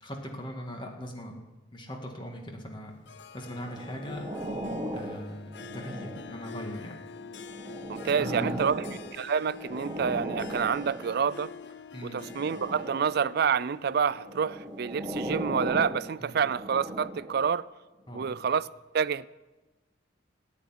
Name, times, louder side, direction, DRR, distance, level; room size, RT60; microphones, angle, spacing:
voice 1, 0.0-1.3 1.7-2.9 3.3-4.2 4.9-6.9 8.2-8.7 11.9-12.2 16.2-16.4 18.1-18.3, equal, 25° left, 2.2 m, -39 dB
Harp, 3.1-15.3, left 5 dB, 60° left, 0.6 m, -46 dB
sound 1, 3.5-6.6 7.2-11.4 12.2-13.3 14.1-17.5 18.2-18.3, equal, 20° right, 1.6 m, -38 dB
voice 2, 7.9-8.9 9.1-11.5 12.0-17.7 18.1-18.7 18.9-19.3, right 6 dB, 55° right, 0.4 m, -28 dB
15.5 x 8.5 x 9.8 m
head